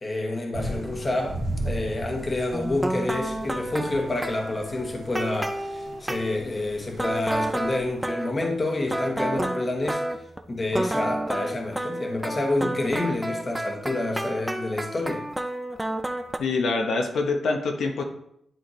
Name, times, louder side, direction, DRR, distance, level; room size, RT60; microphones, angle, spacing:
voice 1, 0.0-1.4 1.6-10.0 10.5-15.2, left 2 dB, 25° left, 1 dB, 1.2 m, -28 dB
sound 1, 0.5-7.9, right 1 dB, 80° right, 1.8 m, -37 dB
sound 2, 2.5-6.4 7.0-10.4 10.7-16.4, right 1 dB, 10° right, 0.4 m, -30 dB
voice 2, 16.4-18.0, left 3 dB, 90° left, 3 dB, 0.9 m, -25 dB
11.0 x 4.3 x 3.1 m, 0.73 s
wide cardioid pair, 155°, 0 cm